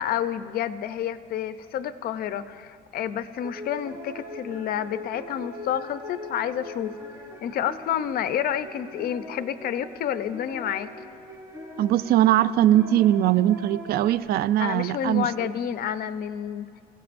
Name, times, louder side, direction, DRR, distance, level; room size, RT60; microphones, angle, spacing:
voice 1, 0.0-6.9 7.4-10.9 14.6-16.7, left 10 dB, 60° left, 12 dB, 0.6 m, -29 dB
sound 1, 3.4-14.2, left 1 dB, 15° right, 4.7 m, -41 dB
voice 2, 11.8-15.5, right 12 dB, 65° right, 17 dB, 0.4 m, -21 dB
25.0 x 16.5 x 2.6 m, 2.3 s
cardioid pair, 110°, 17 cm